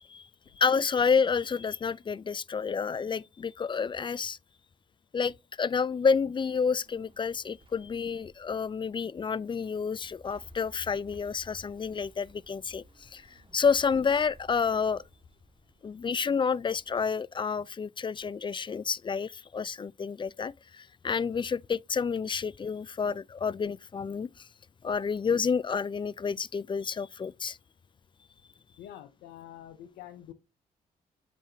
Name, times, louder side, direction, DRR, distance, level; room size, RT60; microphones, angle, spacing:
voice 1, 0.6-4.4 5.1-15.0 15.8-24.5 24.8-27.6, left 5 dB, 30° left, 0.3 m, -29 dB
sound 1, 5.8-17.1, right 2 dB, 30° right, 1.7 m, -58 dB
voice 2, 28.8-30.3, left 11 dB, 80° left, 0.6 m, -46 dB
7.4 x 5.0 x 2.7 m
supercardioid pair, 50°, 17 cm